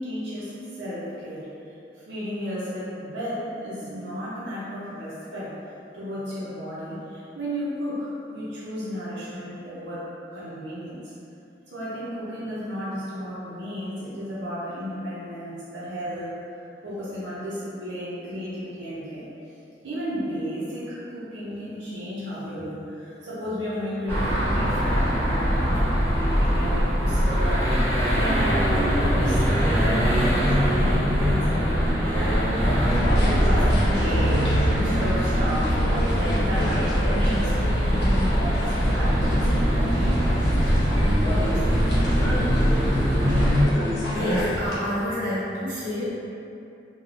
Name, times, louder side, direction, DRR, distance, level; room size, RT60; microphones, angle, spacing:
voice 1, 0.0-1.5 1.9-5.6 5.9-11.1 11.7-19.3 19.8-27.8 28.1-33.0 33.4-34.4 34.7-35.8 36.2-41.8, equal, 80° right, -9 dB, 0.7 m, -33 dB
sound 1, 24.1-43.7, equal, 10° left, 0.6 m, -22 dB
sound 2, 32.9-44.8, equal, 65° left, 0.6 m, -29 dB
voice 2, 44.1-46.1, left 1 dB, 50° right, -10 dB, 0.8 m, -28 dB
3.3 x 2.3 x 2.4 m, 2.7 s
head